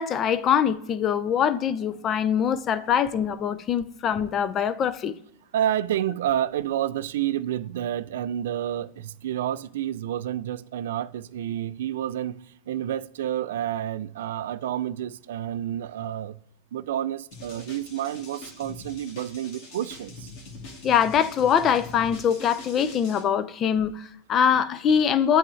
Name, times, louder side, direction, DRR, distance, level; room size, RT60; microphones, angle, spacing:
voice 1, 0.0-5.1 20.8-25.4, left 8 dB, 30° left, 0.5 m, -23 dB
voice 2, 5.5-12.3 12.7-16.4 16.7-20.3, right 11 dB, 70° right, 0.4 m, -29 dB
sound 1, 17.3-23.2, left 2 dB, 50° left, 2.0 m, -43 dB
8.5 x 3.5 x 3.2 m
hypercardioid pair, 125°, 0 cm